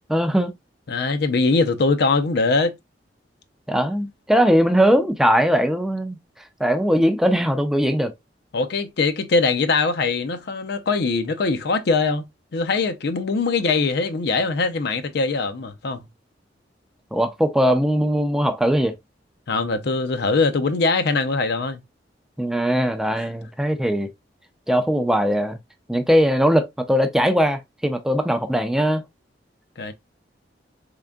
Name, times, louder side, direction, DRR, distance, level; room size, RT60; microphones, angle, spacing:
voice 1, 0.1-0.6 3.7-6.2 6.6-8.1 17.1-18.9 22.4-24.1 24.7-25.6 25.9-29.0, equal, 5° right, 0.4 m, -20 dB
voice 2, 0.9-2.7 8.5-12.2 12.5-16.1 19.5-21.8 29.8-29.9, left 3 dB, 65° left, 0.5 m, -22 dB
3.7 x 3.5 x 2.2 m
head